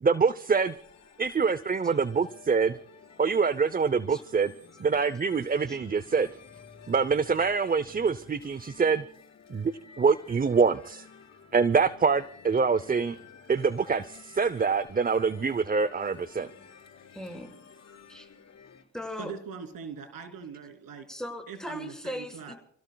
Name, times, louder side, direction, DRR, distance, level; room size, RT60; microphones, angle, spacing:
voice 1, 0.0-0.7 1.2-2.8 3.2-4.5 4.8-6.3 6.9-9.0 9.5-11.1 11.5-13.2 13.5-16.5, right 5 dB, 25° right, 16 dB, 0.7 m, -25 dB
sound 1, 0.6-18.8, left 6 dB, 50° left, 4.8 m, -53 dB
voice 2, 17.2-17.5 18.1-18.3 18.9-19.3 21.1-22.5, left 1 dB, ahead, 3 dB, 5.8 m, -38 dB
voice 3, 19.2-21.1 21.5-22.5, right 6 dB, 75° right, 7 dB, 3.2 m, -41 dB
29.5 x 17.5 x 2.3 m, 0.64 s
supercardioid pair, 65°, 35 cm